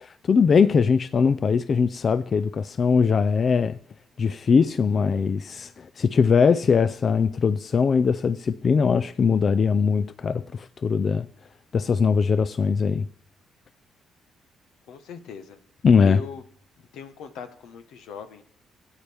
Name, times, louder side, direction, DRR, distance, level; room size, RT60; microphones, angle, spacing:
voice 1, 0.0-3.8 4.2-11.3 11.7-13.1 15.8-16.2, left 5 dB, 45° left, 0.4 m, -21 dB
voice 2, 14.9-15.6 16.0-16.4 16.9-18.4, left 6 dB, 85° left, 1.1 m, -39 dB
15.0 x 9.0 x 3.4 m
cardioid pair, 90°, 0 cm